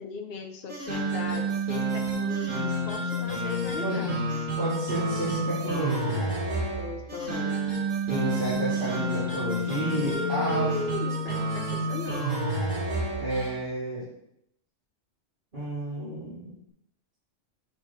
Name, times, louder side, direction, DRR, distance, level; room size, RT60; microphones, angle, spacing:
voice 1, 0.0-4.3 6.8-7.6 9.9-12.3, left 4 dB, 50° left, 4 dB, 0.9 m, -37 dB
sound 1, 0.7-13.5, right 1 dB, 80° right, 2.5 m, -29 dB
voice 2, 4.6-6.3 8.1-10.7 13.2-14.0 15.5-16.6, right 1 dB, 40° right, -11 dB, 2.7 m, -31 dB
7.0 x 4.3 x 5.7 m, 0.77 s
omnidirectional pair, 1.4 m